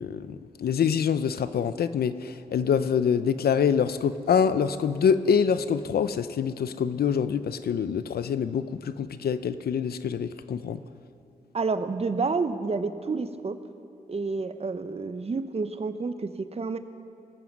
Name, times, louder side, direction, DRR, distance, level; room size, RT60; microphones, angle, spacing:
voice 1, 0.0-10.8, left 7 dB, 75° left, 13 dB, 0.6 m, -25 dB
voice 2, 11.5-13.6 14.1-16.8, right 4 dB, 40° right, 10 dB, 0.8 m, -29 dB
20.5 x 9.2 x 6.2 m, 2.6 s
cardioid pair, 80°, 16 cm